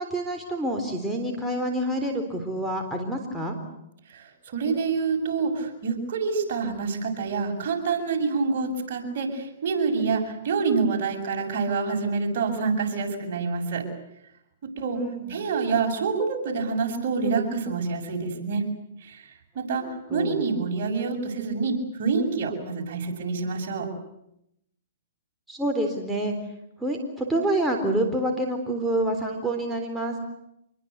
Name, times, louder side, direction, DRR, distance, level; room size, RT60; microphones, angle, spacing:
voice 1, 0.0-3.6 15.0-15.4 19.8-20.4 25.5-26.4 26.8-30.2, right 1 dB, 5° right, 1 dB, 3.9 m, -27 dB
voice 2, 4.1-13.9 14.6-15.0 15.3-18.7 19.0-19.3 19.5-23.9, right 4 dB, 55° right, 2 dB, 7.5 m, -27 dB
26.5 x 22.5 x 8.3 m, 0.80 s
hypercardioid pair, 130°, 0 cm